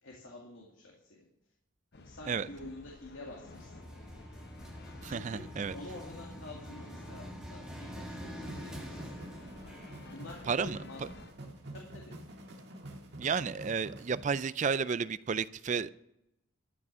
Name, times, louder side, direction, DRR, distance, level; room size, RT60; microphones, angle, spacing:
voice 1, 0.0-1.3 1.9-3.9 5.1-5.4 5.7-9.1 10.1-11.1 11.7-12.2, left 2 dB, 70° left, 2.2 m, -48 dB
sound 1, 1.9-11.3, left 2 dB, 50° left, 0.8 m, -53 dB
sound 2, 3.5-11.4, equal, 5° right, 1.6 m, -46 dB
voice 2, 5.0-5.7 10.5-10.8 13.2-15.9, right 6 dB, 35° right, 0.3 m, -32 dB
sound 3, 8.4-14.4, right 1 dB, 50° right, 1.8 m, -47 dB
13.5 x 6.2 x 6.8 m
head